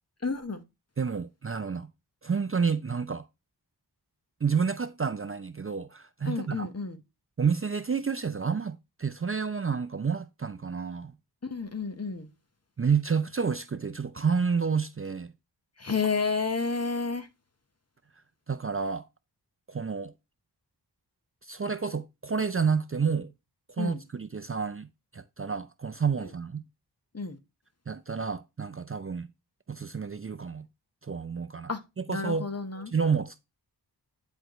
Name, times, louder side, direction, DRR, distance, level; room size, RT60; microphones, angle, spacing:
voice 1, 0.2-0.6 6.3-7.0 11.4-12.3 15.8-17.3 23.8-24.0 26.2-26.3 27.1-27.4 31.7-31.8 32.1-32.9, left 4 dB, 40° left, 1.0 m, -31 dB
voice 2, 1.0-1.9 2.2-3.3 4.4-6.7 7.4-11.1 12.8-15.3 18.5-19.1 19.7-20.1 21.4-23.3 23.8-24.9 25.1-26.6 27.9-29.3 29.7-30.7 31.0-31.7 32.0-32.5 32.9-33.4, right 6 dB, 35° right, 0.5 m, -29 dB
10.0 x 4.5 x 3.0 m
wide cardioid pair, 80°, 41 cm